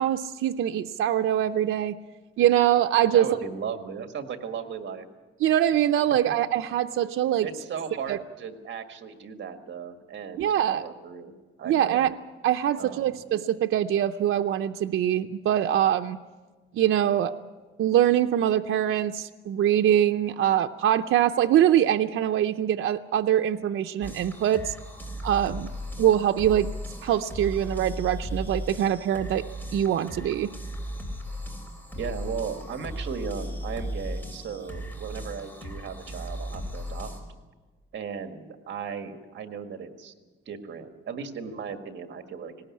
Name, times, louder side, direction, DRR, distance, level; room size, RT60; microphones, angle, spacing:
voice 1, 0.0-1.9 2.4-3.3 5.4-7.5 8.1-8.2 10.4-10.8 11.7-12.1 12.4-16.2 16.7-17.3 17.8-24.7 25.2-25.7 26.0-26.7 27.0-29.4 29.7-30.5, right 11 dB, 75° right, 6 dB, 0.6 m, -23 dB
voice 2, 3.0-5.1 7.4-11.3 11.6-12.1 12.8-13.2 32.0-37.2 37.9-40.1 40.5-42.5, right 6 dB, 60° right, 7 dB, 1.8 m, -36 dB
sound 1, 24.0-37.2, equal, 10° left, 3.3 m, -36 dB
19.0 x 18.5 x 8.5 m, 1.3 s
cardioid pair, 155°, 21 cm